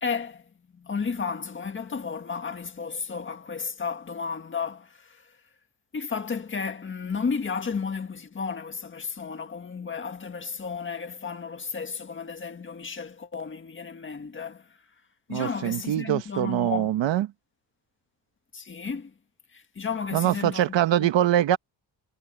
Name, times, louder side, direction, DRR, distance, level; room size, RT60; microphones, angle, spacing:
voice 1, 0.0-5.3 5.9-14.8 15.3-16.9 18.5-19.1 19.5-21.1, left 5 dB, 25° left, 1.7 m, -33 dB
voice 2, 15.3-17.3 20.1-21.6, right 12 dB, 85° right, 1.3 m, -23 dB
cardioid pair, 160°, 43 cm